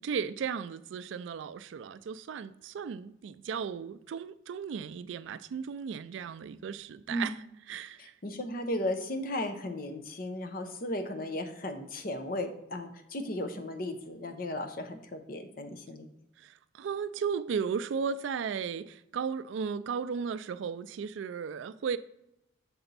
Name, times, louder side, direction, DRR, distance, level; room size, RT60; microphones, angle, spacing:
voice 1, 0.0-8.1 16.4-22.0, right 6 dB, 75° right, 0.3 m, -35 dB
voice 2, 8.0-16.1, left 1 dB, 50° left, 0.7 m, -35 dB
6.9 x 4.3 x 4.0 m
head